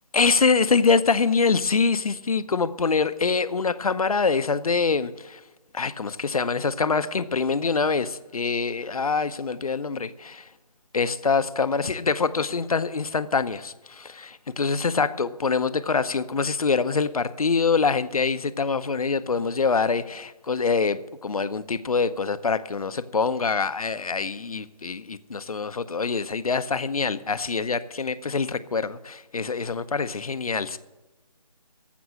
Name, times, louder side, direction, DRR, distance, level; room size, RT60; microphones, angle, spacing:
voice 1, 0.1-5.4 5.7-10.5 10.9-30.8, left 4 dB, 70° left, 14 dB, 0.8 m, -25 dB
14.5 x 6.2 x 9.8 m, 1.1 s
figure-of-eight pair, 165°, 19 cm